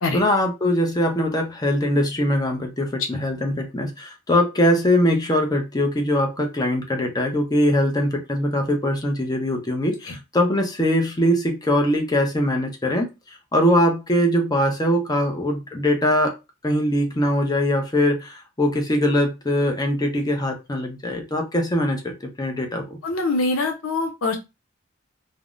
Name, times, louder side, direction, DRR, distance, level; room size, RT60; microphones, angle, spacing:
voice 1, 0.1-13.1 13.5-16.3 16.6-23.0, left 1 dB, 20° left, 3 dB, 0.6 m, -22 dB
voice 2, 23.0-24.4, left 3 dB, 90° left, 5 dB, 0.7 m, -23 dB
3.4 x 2.0 x 2.4 m, 0.25 s
head